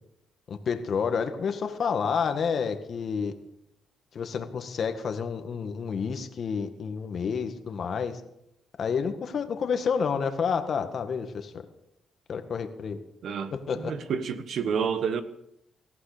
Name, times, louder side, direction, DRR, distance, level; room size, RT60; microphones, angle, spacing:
voice 1, 0.5-3.3 4.1-8.2 8.8-11.5 12.3-13.0 13.7-13.9, left 6 dB, 55° left, 1.8 m, -29 dB
voice 2, 13.2-15.2, right 6 dB, 65° right, 1.4 m, -29 dB
18.5 x 14.5 x 5.1 m
cardioid pair, 90°, 0 cm